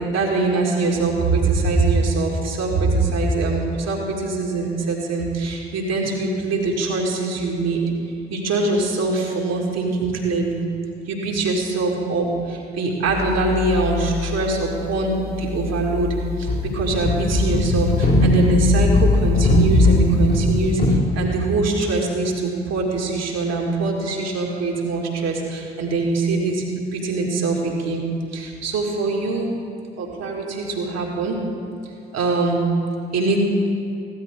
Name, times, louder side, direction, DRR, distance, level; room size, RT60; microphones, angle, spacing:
voice 1, 0.0-7.8 8.3-10.6 11.1-28.1 28.3-29.5 30.0-31.4 32.1-32.6 33.1-33.4, right 3 dB, 55° right, -1 dB, 2.3 m, -23 dB
sound 1, 13.1-15.0 15.4-21.0, left 2 dB, 30° left, 2.0 m, -20 dB
15.0 x 12.5 x 3.7 m, 2.5 s
figure-of-eight pair, 45°, 30 cm